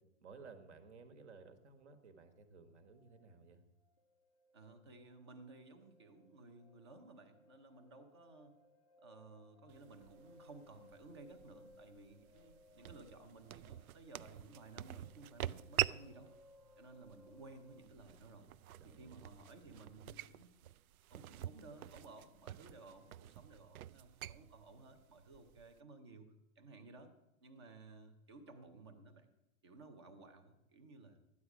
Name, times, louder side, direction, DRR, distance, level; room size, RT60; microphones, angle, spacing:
voice 1, 0.2-3.6 18.8-19.4, right 4 dB, 55° right, 9 dB, 1.5 m, -57 dB
sound 1, 2.8-3.5 3.8-17.8, left 2 dB, 30° left, 0.4 m, -65 dB
voice 2, 4.5-8.5 9.0-16.3 16.8-18.5 18.8-20.5 21.1-27.1 27.4-29.3 29.6-31.2, right 3 dB, 20° right, 7 dB, 0.6 m, -57 dB
sound 2, 9.7-25.8, right 13 dB, 90° right, 0.5 m, -46 dB
13.0 x 9.6 x 4.8 m, 0.94 s
hypercardioid pair, 175°, 42 cm